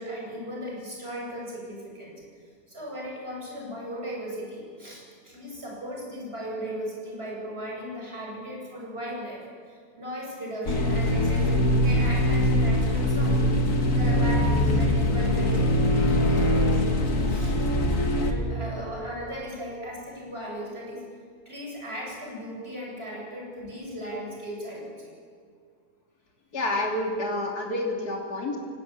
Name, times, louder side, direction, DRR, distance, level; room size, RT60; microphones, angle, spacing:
voice 1, 0.0-2.2 2.7-13.5 13.9-17.5 18.3-21.0 21.5-25.1, equal, 40° right, -3 dB, 7.6 m, -37 dB
sound 1, 10.7-18.3, left 1 dB, 55° left, 2.2 m, -22 dB
voice 2, 26.5-28.6, left 2 dB, 75° left, 0 dB, 3.5 m, -28 dB
24.0 x 19.0 x 8.7 m, 2.1 s
omnidirectional pair, 1.7 m